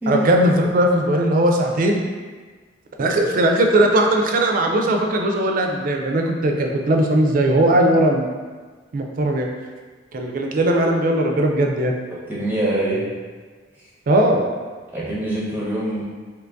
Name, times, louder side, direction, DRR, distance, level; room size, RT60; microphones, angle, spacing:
voice 1, 0.1-2.0 3.0-8.3 8.9-9.5 10.1-11.9 14.1-14.5, right 1 dB, 45° right, 2 dB, 0.4 m, -18 dB
voice 2, 12.3-13.0 14.9-16.0, right 1 dB, 10° right, -8 dB, 0.7 m, -24 dB
2.8 x 2.6 x 3.4 m, 1.4 s
head